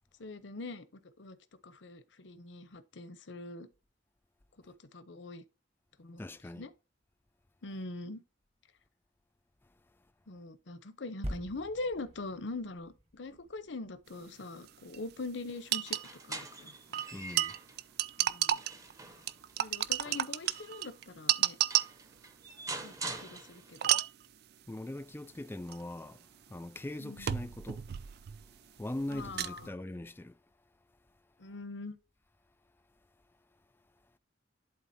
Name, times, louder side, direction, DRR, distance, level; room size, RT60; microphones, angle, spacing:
voice 1, 0.2-0.8 1.2-1.4 1.6-3.7 4.7-5.4 6.0-6.2 6.5-6.7 7.6-8.2 10.3-16.0 16.3-17.0 18.2-18.6 19.6-21.6 22.8-22.9 23.2-24.0 27.0-27.3 29.1-29.7 31.4-32.0, left 2 dB, 75° left, 0.8 m, -42 dB
voice 2, 6.2-6.6 17.1-17.6 24.7-26.2 26.5-27.8 28.8-30.3, left 1 dB, 10° left, 0.3 m, -41 dB
sound 1, 11.2-14.8 15.4-15.5, equal, 35° right, 1.5 m, -44 dB
sound 2, 14.7-14.8 14.9-15.0 15.7-16.1 16.9-18.9 19.3-22.1 23.7-24.3 25.7-25.8 27.2-28.5 28.8-29.7, right 12 dB, 60° right, 0.4 m, -31 dB
sound 3, 15.7-17.8 18.3-20.9 21.4-21.5 21.7-23.9, right 3 dB, 20° right, 0.8 m, -45 dB
11.5 x 3.8 x 2.7 m
head